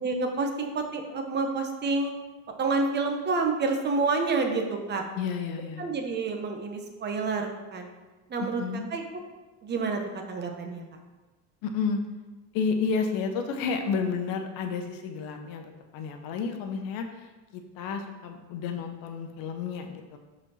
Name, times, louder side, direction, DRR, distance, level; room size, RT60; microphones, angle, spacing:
voice 1, 0.0-2.1 2.6-5.0 5.8-7.9 8.3-8.6 8.9-9.2 9.6-10.0 10.3-10.8, right 3 dB, 30° right, 4 dB, 0.9 m, -28 dB
voice 2, 5.1-5.9 8.6-8.9 11.6-12.0 12.5-20.2, left 5 dB, 65° left, 5 dB, 1.0 m, -31 dB
5.2 x 4.3 x 5.6 m, 1.2 s
cardioid pair, 135°, 37 cm